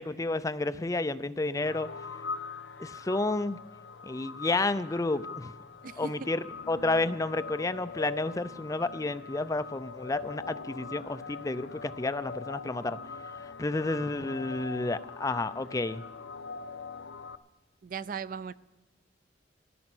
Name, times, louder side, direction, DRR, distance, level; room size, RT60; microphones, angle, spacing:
voice 1, 0.0-1.9 2.8-3.6 4.0-5.5 6.0-13.0 13.6-16.0, left 2 dB, 20° left, 13 dB, 0.4 m, -31 dB
sound 1, 1.6-17.4, left 5 dB, 70° left, 0.6 m, -42 dB
voice 2, 17.8-18.5, right 6 dB, 45° right, 17 dB, 0.4 m, -37 dB
15.5 x 11.5 x 6.1 m, 1.2 s
head